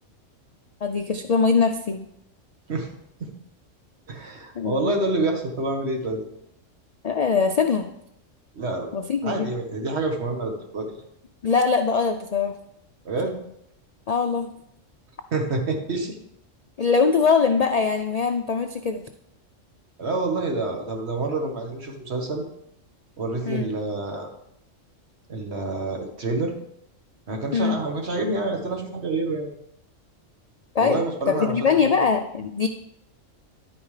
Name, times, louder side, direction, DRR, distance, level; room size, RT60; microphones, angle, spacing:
voice 1, 0.8-2.1 4.6-4.9 7.0-7.9 8.9-9.5 11.4-12.6 14.1-14.5 16.8-19.0 23.5-23.7 27.5-27.8 30.7-31.0 31.3-32.7, left 5 dB, 80° left, 6 dB, 0.3 m, -22 dB
voice 2, 4.1-6.2 8.5-8.9 9.2-11.0 13.1-13.4 15.3-16.2 20.0-22.4 23.2-24.3 25.3-26.5 27.3-29.5 30.8-31.5 31.8-31.9, right 2 dB, 55° right, 2 dB, 1.6 m, -27 dB
11.0 x 8.9 x 3.3 m, 0.77 s
omnidirectional pair, 1.3 m